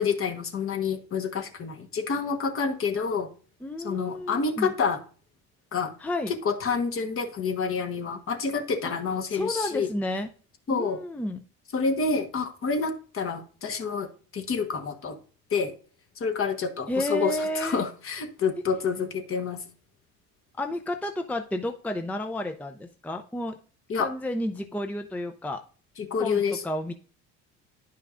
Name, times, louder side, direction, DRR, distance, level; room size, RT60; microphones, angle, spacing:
voice 1, 0.0-3.3 3.8-5.0 5.7-5.9 6.3-9.9 10.7-11.0 11.7-15.2 15.5-15.7 16.2-19.6 23.9-24.1 26.0-26.6, left 5 dB, 45° left, 7 dB, 1.2 m, -28 dB
voice 2, 3.6-4.7 6.0-6.3 9.3-10.3 10.7-11.4 16.9-17.8 20.6-23.6 24.0-25.6 26.2-26.9, left 1 dB, 5° left, 6 dB, 0.5 m, -31 dB
10.0 x 5.7 x 2.5 m, 0.40 s
supercardioid pair, 85°, 31 cm